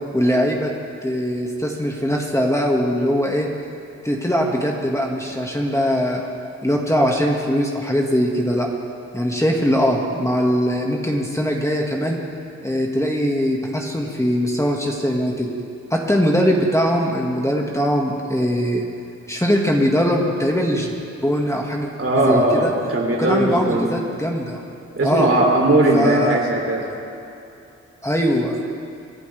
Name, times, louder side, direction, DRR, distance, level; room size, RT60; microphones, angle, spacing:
voice 1, 0.1-0.7 1.0-3.5 4.0-6.2 6.6-8.7 9.1-12.2 12.6-15.5 15.9-18.9 19.3-20.9 21.2-21.9 22.3-22.7 23.2-24.6 25.0-25.3 25.9-26.4 28.0-28.6, equal, 10° left, -1 dB, 2.0 m, -21 dB
voice 2, 22.0-24.0 24.9-26.9, right 2 dB, 50° right, -1 dB, 3.3 m, -19 dB
27.0 x 11.0 x 3.5 m, 2.8 s
cardioid pair, 60°, 30 cm